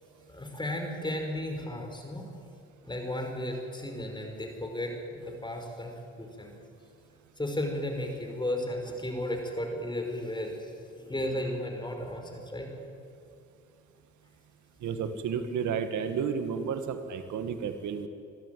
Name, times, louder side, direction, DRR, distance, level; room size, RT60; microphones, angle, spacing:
voice 1, 0.3-2.2 2.8-6.5 7.4-12.7, left 1 dB, 15° left, 3 dB, 5.0 m, -34 dB
voice 2, 14.8-18.1, right 6 dB, 75° right, 8 dB, 1.7 m, -32 dB
26.5 x 13.0 x 9.3 m, 2.5 s
cardioid pair, 90°, 30 cm